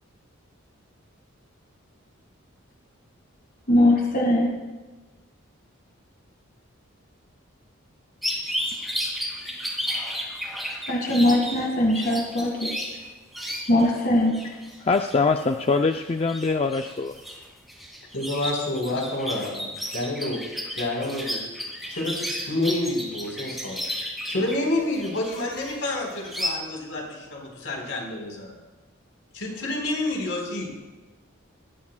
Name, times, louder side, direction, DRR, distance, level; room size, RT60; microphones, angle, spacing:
voice 1, 3.7-4.6 10.9-12.7 13.7-14.3, left 1 dB, 45° left, 0 dB, 1.7 m, -21 dB
sound 1, 8.2-14.0 14.3-26.5, equal, ahead, 2.2 m, -33 dB
voice 2, 14.4-17.2, left 4 dB, 30° left, 5 dB, 0.4 m, -24 dB
voice 3, 18.1-20.4 20.8-21.4 21.9-22.1 22.5-23.8 24.3-28.5 29.3-30.7, left 2 dB, 70° left, 0 dB, 4.0 m, -28 dB
20.5 x 13.0 x 2.2 m, 1.2 s
head